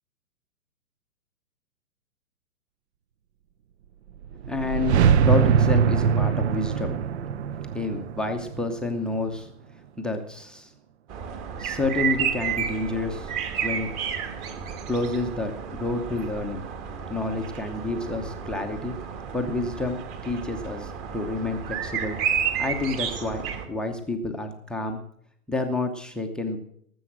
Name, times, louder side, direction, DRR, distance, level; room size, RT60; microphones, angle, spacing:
sound 1, 4.2-9.3, right 7 dB, 45° right, 0.6 m, -22 dB
voice 1, 4.5-7.1 7.7-9.5 10.0-10.7 11.6-13.3 13.6-13.9 14.9-16.7 17.1-18.9 19.3-22.2 22.6-25.0 25.5-26.6, left 2 dB, ahead, 8 dB, 0.7 m, -29 dB
sound 2, 11.1-23.7, right 8 dB, 30° right, 1.9 m, -31 dB
19.0 x 7.7 x 6.2 m, 0.68 s
hypercardioid pair, 125°, 45 cm